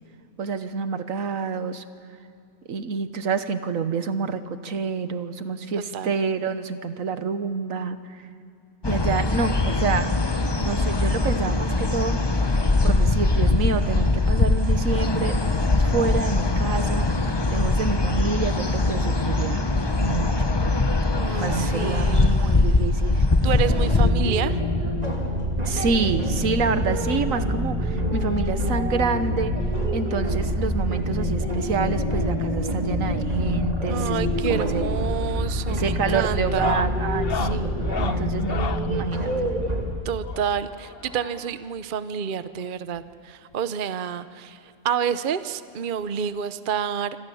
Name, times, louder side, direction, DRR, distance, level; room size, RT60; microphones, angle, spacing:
voice 1, 0.4-1.8 2.7-8.3 8.8-10.1 10.6-12.2 12.8-15.3 15.8-19.6 19.9-20.5 21.4-23.2 25.6-29.5 29.9-34.8 35.7-37.7 38.0-39.3, right 5 dB, 75° right, 10 dB, 1.6 m, -28 dB
sound 1, 8.8-24.1, left 2 dB, 20° left, 0.9 m, -22 dB
voice 2, 21.1-22.9 23.4-24.6 33.9-36.8 40.0-47.2, right 8 dB, 45° right, 12 dB, 0.8 m, -29 dB
sound 2, 23.4-39.8, equal, 30° right, 2.9 m, -26 dB
sound 3, 34.8-35.2 35.5-35.8 36.4-38.9 40.2-41.6 42.6-42.7 43.0-43.1 43.5-43.6 44.9-45.0 46.3-46.4, left 6 dB, 50° left, 1.0 m, -34 dB
27.0 x 25.5 x 7.0 m, 2.4 s
omnidirectional pair, 1.4 m